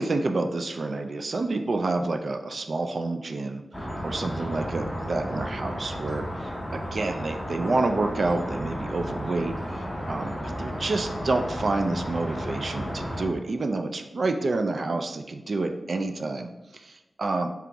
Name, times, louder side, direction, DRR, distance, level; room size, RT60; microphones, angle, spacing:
voice 1, 0.0-3.6 4.0-6.3 6.7-9.6 10.1-17.5, right 3 dB, 55° right, 5 dB, 0.4 m, -28 dB
sound 1, 3.7-13.3, equal, ahead, 0.7 m, -33 dB
3.7 x 2.9 x 3.5 m, 1.0 s
wide cardioid pair, 120°, 0 cm